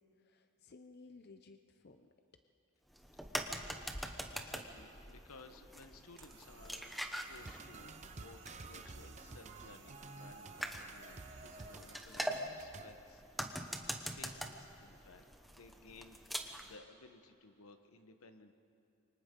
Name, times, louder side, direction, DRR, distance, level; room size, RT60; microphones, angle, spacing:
voice 1, 0.0-2.1, left 3 dB, 50° left, 7 dB, 0.7 m, -58 dB
sound 1, 2.9-16.7, equal, ahead, 1.0 m, -44 dB
voice 2, 4.3-18.5, left 3 dB, 85° left, 8 dB, 1.2 m, -58 dB
sound 2, 6.2-12.0, right 5 dB, 60° right, 2.2 m, -59 dB
sound 3, 7.4-12.9, right 3 dB, 35° right, 0.7 m, -52 dB
28.0 x 24.5 x 3.9 m, 2.8 s
head